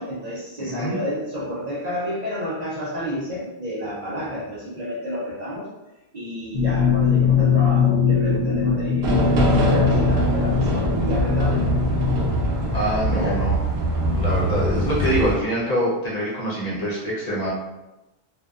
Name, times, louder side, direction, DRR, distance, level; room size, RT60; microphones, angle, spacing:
voice 1, 0.0-5.7 6.1-11.6 13.1-13.4, equal, 45° right, -7 dB, 0.6 m, -30 dB
voice 2, 0.6-1.0 12.7-13.6 14.1-17.5, right 1 dB, 45° left, -6 dB, 0.6 m, -25 dB
sound 1, 6.5-12.3, left 7 dB, 80° left, 0.9 m, -21 dB
sound 2, 9.0-15.4, right 1 dB, 80° right, 0.8 m, -23 dB
2.6 x 2.2 x 2.3 m, 1.0 s
omnidirectional pair, 1.1 m